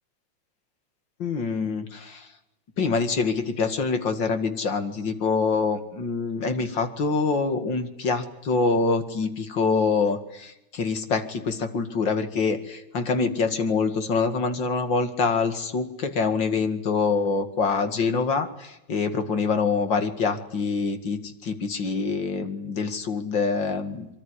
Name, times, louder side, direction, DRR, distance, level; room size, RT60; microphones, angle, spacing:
voice 1, 1.2-2.3 2.8-24.1, left 4 dB, 40° left, 8 dB, 2.7 m, -25 dB
25.0 x 24.0 x 9.9 m, 0.86 s
omnidirectional pair, 3.3 m